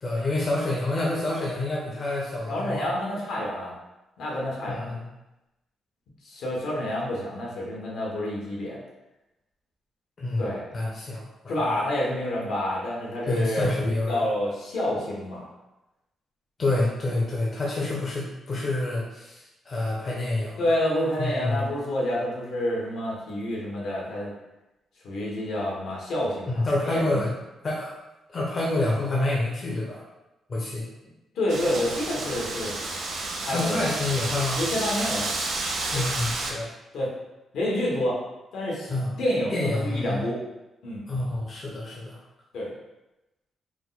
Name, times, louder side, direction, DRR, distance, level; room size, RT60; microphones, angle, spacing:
voice 1, 0.0-2.8 4.7-5.0 10.2-10.5 10.7-11.8 13.3-14.3 16.6-20.6 21.2-21.6 26.5-27.3 27.6-27.9 28.3-30.0 30.5-30.8 33.4-34.6 35.9-36.7 38.9-39.1 39.5-40.2 41.1-42.2, left 2 dB, 35° left, -4 dB, 0.7 m, -28 dB
voice 2, 2.5-3.7 4.2-4.9 6.2-8.8 10.4-10.6 11.5-15.5 20.6-24.3 25.0-27.3 31.3-32.7 33.4-33.8 34.6-35.3 35.9-36.0 36.9-37.1 37.5-38.2 38.5-40.4 40.8-41.0 42.5-42.7, left 1 dB, 75° left, -4 dB, 1.4 m, -28 dB
Wind, 31.5-36.5, right 2 dB, 70° right, 0.9 m, -30 dB
4.8 x 2.1 x 4.0 m, 0.98 s
cardioid pair, 155°, 0 cm